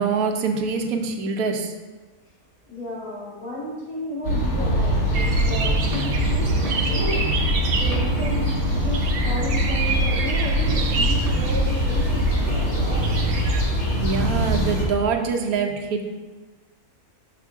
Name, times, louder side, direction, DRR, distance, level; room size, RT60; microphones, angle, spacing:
voice 1, 0.0-1.7 14.0-16.0, right 5 dB, 80° right, 4 dB, 1.1 m, -24 dB
voice 2, 2.6-6.5 6.9-7.3 7.6-13.2, left 1 dB, 85° left, -10 dB, 2.9 m, -33 dB
sound 1, 4.2-14.8, equal, 60° left, 1.7 m, -22 dB
sound 2, 5.1-13.6, right 4 dB, 55° right, 0.6 m, -30 dB
6.7 x 5.0 x 3.5 m, 1.3 s
omnidirectional pair, 1.6 m